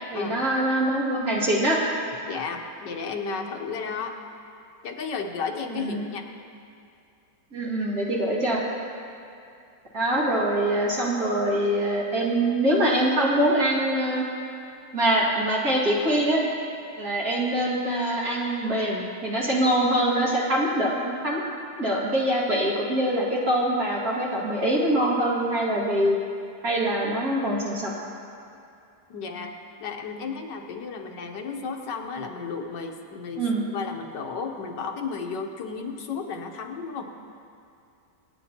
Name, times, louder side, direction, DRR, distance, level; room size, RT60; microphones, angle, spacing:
voice 1, 0.1-1.8 5.7-6.1 7.5-8.6 9.9-14.2 14.9-16.5 17.0-21.4 21.8-26.2 26.6-27.9 33.4-33.6, right 1 dB, 60° right, -5 dB, 2.6 m, -24 dB
voice 2, 2.2-4.1 4.8-6.2 29.1-29.5 29.8-33.4 33.7-37.0, left 5 dB, 85° left, 3 dB, 1.6 m, -33 dB
25.5 x 9.4 x 2.9 m, 2.5 s
omnidirectional pair, 1.8 m